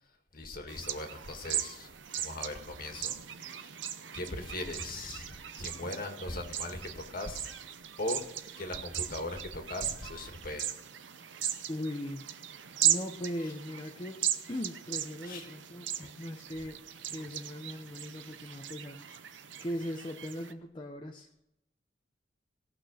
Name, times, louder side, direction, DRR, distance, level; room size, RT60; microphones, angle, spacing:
voice 1, 0.3-3.2 3.5-3.8 4.1-7.5 8.0-8.3 8.6-10.7 15.2-15.5, left 2 dB, 50° left, 4 dB, 1.9 m, -39 dB
sound 1, 0.7-20.5, right 10 dB, 90° right, 0.8 m, -37 dB
voice 2, 11.7-12.3 12.8-14.2 14.5-16.8 17.1-19.0 19.6-21.3, left 1 dB, 25° left, 1 dB, 0.8 m, -39 dB
17.5 x 6.0 x 6.5 m, 0.86 s
head